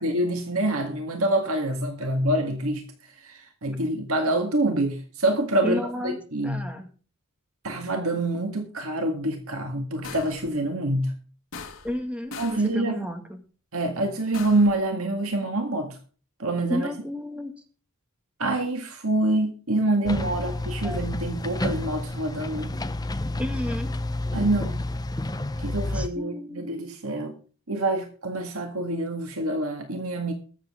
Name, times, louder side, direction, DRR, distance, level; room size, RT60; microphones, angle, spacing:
voice 1, 0.0-2.8 3.2-6.6 7.6-11.1 12.4-12.9 13.7-16.0 16.4-16.9 18.4-22.7 24.3-24.8 25.6-27.4 27.7-30.3, right 1 dB, 85° right, 4 dB, 1.9 m, -26 dB
voice 2, 5.6-6.2 6.4-6.9 11.8-13.4 16.7-17.5 20.8-21.0 23.4-23.9 25.9-26.9, equal, 5° right, 5 dB, 2.1 m, -32 dB
sound 1, 10.0-10.5 11.5-12.0 12.3-12.7 14.3-14.8, left 5 dB, 75° left, 2.2 m, -40 dB
sound 2, 20.1-26.1, left 2 dB, 20° left, 0.8 m, -30 dB
21.0 x 7.7 x 3.7 m, 0.38 s
head